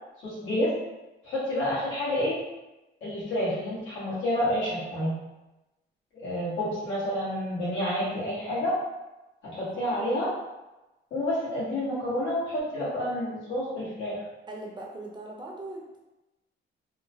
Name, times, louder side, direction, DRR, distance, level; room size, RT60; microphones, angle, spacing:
voice 1, 0.2-0.7 1.2-2.4 3.0-5.1 6.2-8.8 9.4-10.3 11.1-14.2, left 1 dB, 75° left, -8 dB, 1.4 m, -29 dB
voice 2, 9.7-10.0 14.5-16.1, right 2 dB, 20° right, -1 dB, 0.6 m, -41 dB
2.9 x 2.1 x 2.8 m, 1.0 s
cardioid pair, 90°, 20 cm